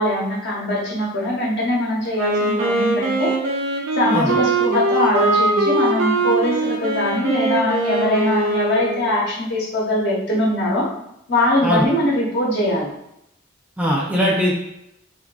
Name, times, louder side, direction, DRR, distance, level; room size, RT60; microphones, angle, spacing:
voice 1, 0.0-3.3 3.9-10.9 11.3-12.9, left 1 dB, 60° left, -4 dB, 1.0 m, -21 dB
Wind instrument woodwind instrument, 2.0-9.2, right 2 dB, 90° right, 0.6 m, -21 dB
voice 2, 13.8-14.5, equal, 5° right, -3 dB, 0.5 m, -20 dB
2.6 x 2.5 x 3.8 m, 0.82 s
head